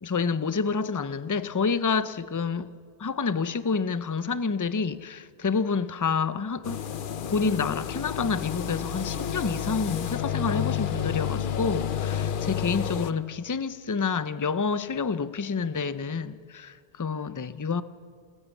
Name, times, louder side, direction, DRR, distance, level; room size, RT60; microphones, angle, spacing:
voice 1, 0.0-2.7 3.0-6.8 7.3-17.8, left 5 dB, 30° left, 0.4 m, -28 dB
sound 1, 6.6-13.1, left 9 dB, 55° left, 0.8 m, -30 dB
29.0 x 14.0 x 7.1 m
omnidirectional pair, 1.1 m